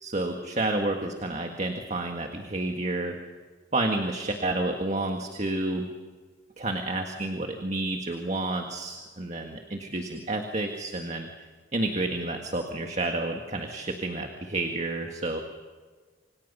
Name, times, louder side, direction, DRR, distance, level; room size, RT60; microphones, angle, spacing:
voice 1, 0.0-3.2 3.7-5.9 6.6-11.3 11.7-15.4, right 2 dB, 40° right, 3 dB, 1.8 m, -30 dB
29.0 x 26.0 x 5.6 m, 1.4 s
head